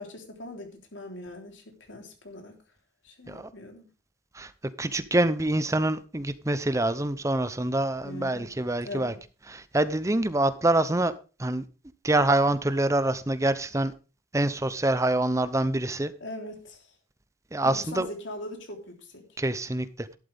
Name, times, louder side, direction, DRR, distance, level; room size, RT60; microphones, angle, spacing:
voice 1, 0.0-2.6 3.0-3.8 8.0-8.5 8.8-9.2 16.2-16.9 17.6-19.3, left 1 dB, 90° left, 3.6 m, -41 dB
voice 2, 4.8-9.1 9.5-11.1 11.4-11.6 12.0-13.9 14.3-16.1 17.5-18.1 19.4-20.2, right 1 dB, 15° right, 0.7 m, -25 dB
12.0 x 11.5 x 3.5 m
head